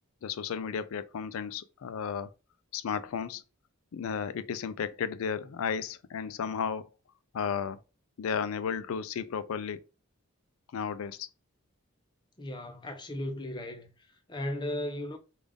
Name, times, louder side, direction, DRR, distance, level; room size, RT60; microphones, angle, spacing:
voice 1, 0.2-2.3 2.7-3.4 3.9-6.9 7.3-7.8 8.2-9.8 10.7-11.3, left 6 dB, 75° left, 0.4 m, -33 dB
voice 2, 12.4-13.9 14.3-15.2, left 1 dB, 20° left, 0.5 m, -36 dB
3.6 x 2.4 x 3.4 m
head